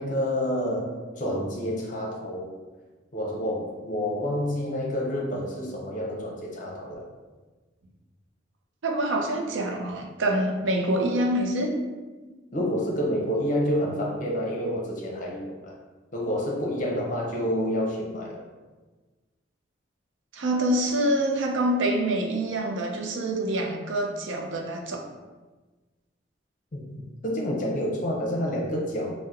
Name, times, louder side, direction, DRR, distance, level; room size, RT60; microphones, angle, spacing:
voice 1, 0.0-2.5 3.1-7.1 12.5-15.8 16.1-18.4 26.7-29.3, equal, 45° left, -1 dB, 0.6 m, -29 dB
voice 2, 8.8-11.8 20.3-25.1, right 1 dB, 85° right, 2 dB, 0.5 m, -26 dB
2.8 x 2.0 x 3.5 m, 1.3 s
head